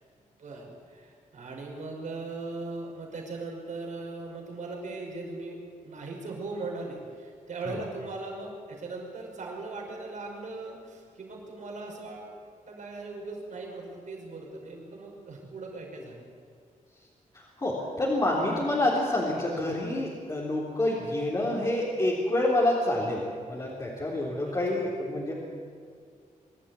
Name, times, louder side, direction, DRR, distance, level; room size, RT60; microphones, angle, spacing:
voice 1, 0.4-12.3 12.6-16.3 24.5-24.8, right 3 dB, 65° right, -1 dB, 5.6 m, -39 dB
voice 2, 17.3-23.2 23.5-25.3, left 1 dB, 25° left, -6 dB, 3.7 m, -27 dB
24.0 x 13.0 x 9.9 m, 2.2 s
wide cardioid pair, 130°, 13 cm